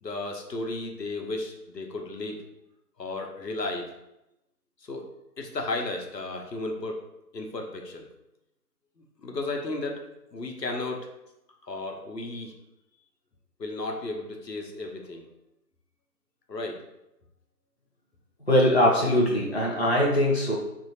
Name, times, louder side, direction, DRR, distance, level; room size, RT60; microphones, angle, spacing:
voice 1, 0.0-2.4 3.0-3.9 4.8-5.1 5.4-7.0 7.3-8.1 9.2-10.0 10.3-11.1 11.6-12.5 13.6-15.3 16.5-16.8, left 2 dB, 85° left, 2 dB, 0.8 m, -34 dB
voice 2, 18.5-20.6, left 1 dB, 45° left, -4 dB, 0.5 m, -21 dB
2.8 x 2.7 x 2.7 m, 0.88 s
figure-of-eight pair, 165°, 49 cm